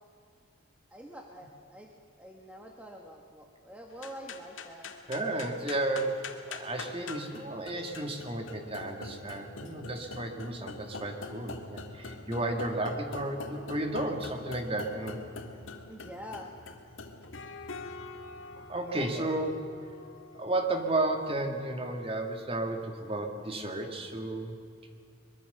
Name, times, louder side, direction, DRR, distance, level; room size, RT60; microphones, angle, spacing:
voice 1, 0.9-1.9 2.2-4.9 15.9-16.5 18.8-19.3, equal, 5° right, 1 dB, 1.5 m, -46 dB
sound 1, 3.9-23.5, left 3 dB, 70° left, 1.9 m, -45 dB
voice 2, 5.1-6.2 6.5-15.2 18.5-19.5 20.3-24.6, right 2 dB, 25° right, 4 dB, 2.1 m, -33 dB
23.5 x 22.0 x 6.9 m, 2.4 s
head